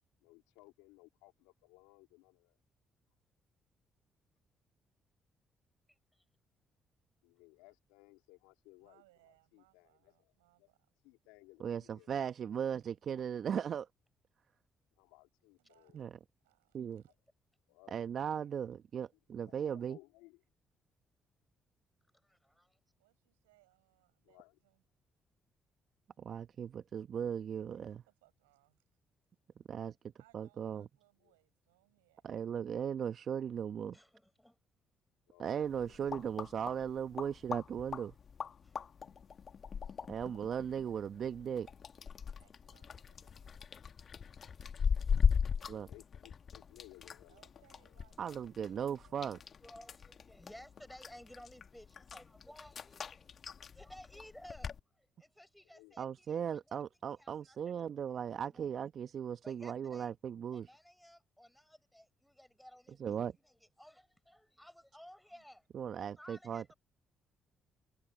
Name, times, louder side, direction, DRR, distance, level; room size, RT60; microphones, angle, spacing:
voice 1, 0.2-2.6 7.2-10.7 11.0-12.1 15.0-16.1 17.1-17.2 17.7-18.0 19.4-20.4 24.2-24.6 31.2-31.3 35.3-36.0 45.6-48.0 55.6-56.0, left 23 dB, 85° left, 2.5 m, -62 dB
voice 2, 5.9-6.2 22.2-22.8 33.9-34.6 38.6-38.8 39.8-40.0 48.6-48.8 49.2-49.3 49.6-56.8 57.1-57.7 58.1-58.2 58.5-58.7 59.4-60.1 60.5-65.6 66.2-66.7, equal, 5° left, 6.6 m, -57 dB
voice 3, 8.8-10.9 12.8-13.0 15.6-16.0 16.4-17.1 23.0-24.8 27.6-28.8 30.2-32.2 42.4-43.6 47.3-49.5 60.2-60.7 65.3-65.4, right 20 dB, 90° right, 6.1 m, -71 dB
voice 4, 11.6-13.9 15.9-16.1 16.7-17.0 17.9-20.0 26.2-28.0 29.7-29.9 30.3-30.8 32.2-34.0 35.4-38.1 40.1-41.7 45.7-45.9 48.2-49.4 56.0-60.7 63.0-63.3 65.7-66.7, right 8 dB, 60° right, 0.9 m, -37 dB
sound 1, 35.6-54.8, left 6 dB, 50° left, 1.5 m, -39 dB
hypercardioid pair, 50°, 0 cm